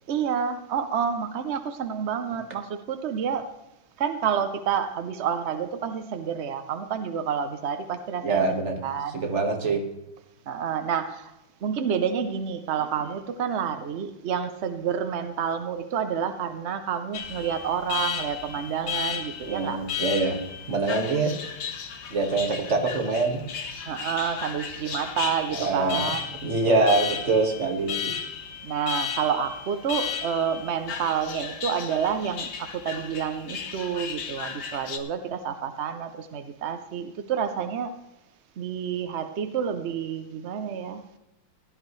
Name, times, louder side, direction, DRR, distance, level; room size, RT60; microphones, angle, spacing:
voice 1, 0.1-3.5 4.0-8.6 8.8-9.2 10.5-11.3 11.6-19.8 23.9-26.2 28.6-38.0 38.6-41.2, right 7 dB, 65° right, 8 dB, 0.6 m, -29 dB
voice 2, 8.2-8.8 9.1-9.8 19.5-20.4 20.7-21.3 22.1-23.4 25.6-26.1 26.4-28.1, right 3 dB, 40° right, 3 dB, 1.8 m, -24 dB
Alarm, 17.1-35.0, left 7 dB, 65° left, 1.6 m, -34 dB
16.0 x 11.5 x 3.2 m, 0.92 s
omnidirectional pair, 2.0 m